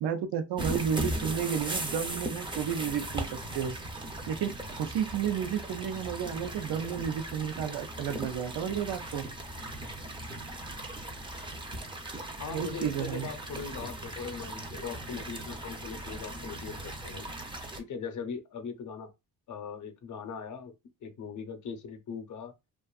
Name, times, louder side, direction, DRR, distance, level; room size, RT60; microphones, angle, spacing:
voice 1, 0.0-3.8 4.3-9.3 12.5-13.3, right 8 dB, 85° right, 0.6 m, -32 dB
sound 1, 0.6-17.8, right 1 dB, 15° right, 0.4 m, -38 dB
voice 2, 12.4-17.3 17.8-19.1 19.5-20.7 21.0-22.5, left 6 dB, 50° left, 0.6 m, -40 dB
2.5 x 2.4 x 2.3 m
cardioid pair, 105°, 39 cm